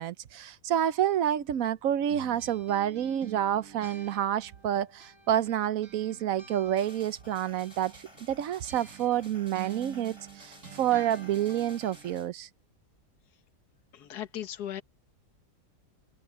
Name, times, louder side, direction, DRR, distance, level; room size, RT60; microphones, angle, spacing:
voice 1, 0.0-12.5, right 11 dB, 65° right, 0.9 m, -29 dB
sound 1, 2.1-5.6 5.8-12.2, right 7 dB, 45° right, 2.2 m, -48 dB
sound 2, 6.8-12.3, left 1 dB, 15° left, 5.7 m, -54 dB
voice 2, 13.9-14.8, left 11 dB, 65° left, 1.6 m, -37 dB
omnidirectional pair, 1.9 m